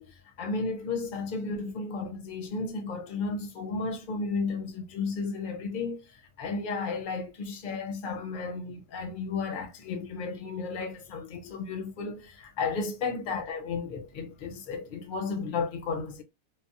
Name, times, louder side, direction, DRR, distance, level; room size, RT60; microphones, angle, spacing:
voice 1, 0.0-16.2, left 4 dB, 50° left, 0.6 m, -33 dB
3.3 x 2.1 x 2.6 m
omnidirectional pair, 1.7 m